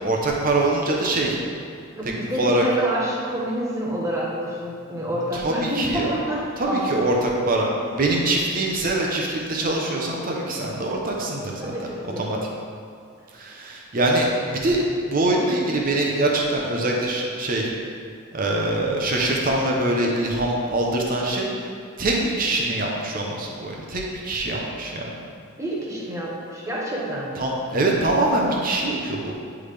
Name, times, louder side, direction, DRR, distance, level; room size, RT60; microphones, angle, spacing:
voice 1, 0.0-1.4 2.4-2.6 5.3-6.1 6.6-7.7 8.0-11.7 12.2-12.4 13.3-17.7 18.3-21.7 22.0-25.1 27.4-29.3, right 2 dB, 40° right, -1 dB, 0.8 m, -23 dB
voice 2, 2.0-6.8 7.7-7.8 11.6-12.3 25.6-27.4, right 1 dB, 15° right, -4 dB, 1.0 m, -28 dB
9.9 x 3.6 x 3.3 m, 2.3 s
head